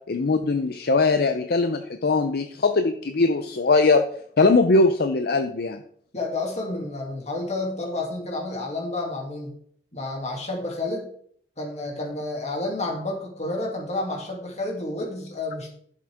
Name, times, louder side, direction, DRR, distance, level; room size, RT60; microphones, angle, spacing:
voice 1, 0.1-4.0 4.4-5.8, left 3 dB, 60° left, 8 dB, 0.6 m, -21 dB
voice 2, 6.1-9.5 9.9-11.1 11.6-15.7, left 2 dB, 40° left, 0 dB, 2.6 m, -30 dB
11.0 x 7.4 x 3.6 m, 0.63 s
head